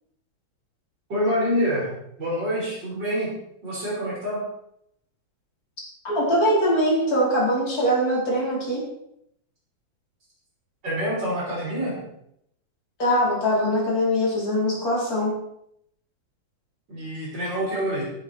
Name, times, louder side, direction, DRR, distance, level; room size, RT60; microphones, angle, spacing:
voice 1, 1.1-1.9 2.2-3.3 3.6-4.4 10.8-12.0 16.9-18.0, equal, 65° right, -5 dB, 6.5 m, -26 dB
voice 2, 6.0-8.8 13.0-15.3, equal, 50° left, -4 dB, 5.1 m, -22 dB
18.0 x 8.2 x 4.7 m, 0.74 s
omnidirectional pair, 2.1 m